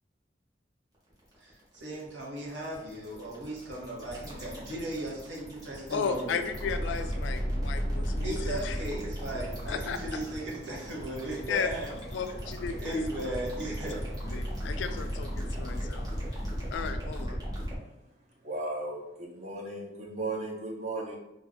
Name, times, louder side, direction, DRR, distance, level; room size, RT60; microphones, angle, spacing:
sound 1, 1.1-17.8, equal, 20° right, 1.0 m, -35 dB
voice 1, 1.4-6.4 8.2-11.9 12.8-14.0, right 1 dB, 80° right, -3 dB, 0.9 m, -37 dB
voice 2, 5.9-8.8 9.7-10.2 11.5-11.7 12.1-13.2 13.8-13.9 14.3-17.4, left 6 dB, 90° left, 8 dB, 0.3 m, -35 dB
sound 2, 9.4-16.8, left 2 dB, 20° left, 0.5 m, -52 dB
voice 3, 18.4-21.2, right 2 dB, 40° right, -2 dB, 0.7 m, -36 dB
2.5 x 2.2 x 3.5 m, 0.89 s
head